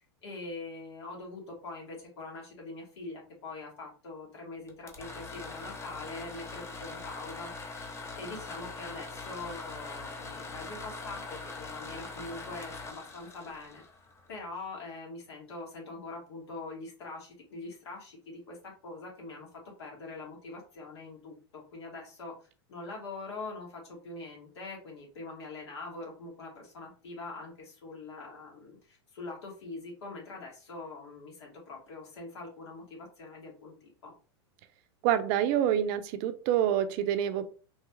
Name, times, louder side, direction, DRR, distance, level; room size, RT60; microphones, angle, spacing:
voice 1, 0.0-13.8 14.3-19.5 19.8-34.1, left 3 dB, 80° left, -1 dB, 1.5 m, -43 dB
sound 1, 4.7-14.5, left 3 dB, 20° left, 0.6 m, -42 dB
voice 2, 35.0-37.5, right 10 dB, 50° right, 10 dB, 0.4 m, -27 dB
3.1 x 2.3 x 3.0 m, 0.38 s
hypercardioid pair, 120°, 14 cm